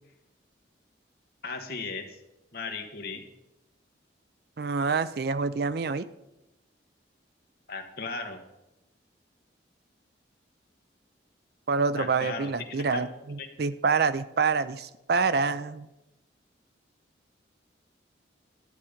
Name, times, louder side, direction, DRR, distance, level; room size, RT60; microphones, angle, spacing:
voice 1, 1.4-2.2 2.5-3.2 7.7-8.4 12.0-13.1 13.4-13.5, left 4 dB, 55° left, 4 dB, 1.4 m, -36 dB
voice 2, 4.6-6.1 11.7-15.9, right 4 dB, 55° right, 15 dB, 0.5 m, -27 dB
12.5 x 8.5 x 5.1 m, 0.93 s
head